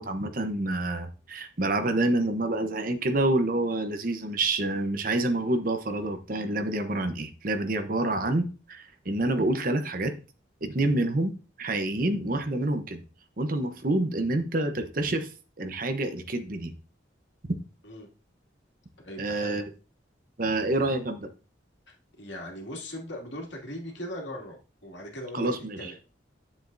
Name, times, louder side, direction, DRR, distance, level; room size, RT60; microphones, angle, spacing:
voice 1, 0.0-10.1 10.6-11.3 11.6-13.0 13.4-15.3 15.6-16.7 17.4-17.5 19.2-19.6 20.4-21.3 25.3-25.9, right 2 dB, 50° right, 8 dB, 0.9 m, -27 dB
voice 2, 19.0-19.7 21.9-25.5 25.8-26.0, left 1 dB, 80° left, 0 dB, 2.4 m, -39 dB
9.4 x 7.3 x 2.7 m, 0.34 s
head